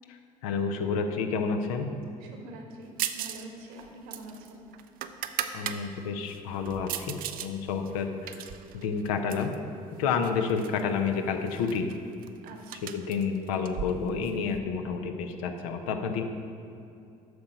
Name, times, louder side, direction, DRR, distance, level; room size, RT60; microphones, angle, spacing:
voice 1, 0.1-1.9 5.5-7.1 7.4-9.5 10.0-11.9 12.9-16.2, left 5 dB, 70° left, 6 dB, 0.8 m, -30 dB
voice 2, 2.2-4.7 12.4-12.9, right 1 dB, 70° right, 2 dB, 1.3 m, -46 dB
sound 1, 3.0-3.5 3.7-5.8 6.3-7.5 7.9-9.6 10.2-10.8 11.1-11.2 11.5-14.6, right 10 dB, 50° right, 0.6 m, -37 dB
8.1 x 6.5 x 5.1 m, 2.6 s
figure-of-eight pair, 55°, 19 cm